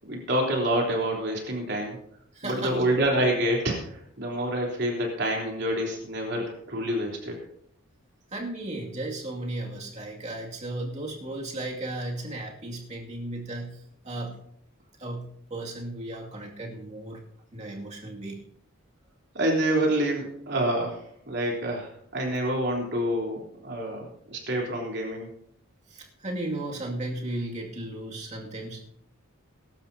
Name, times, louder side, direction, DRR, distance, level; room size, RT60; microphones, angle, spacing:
voice 1, 0.1-2.0 2.4-7.4 19.3-25.3, right 1 dB, 50° right, -1 dB, 3.7 m, -27 dB
voice 2, 2.3-2.9 8.3-14.4 15.0-17.2 17.5-18.4 25.9-28.8, right 1 dB, 30° right, -1 dB, 2.4 m, -35 dB
21.5 x 12.0 x 2.8 m, 0.70 s
head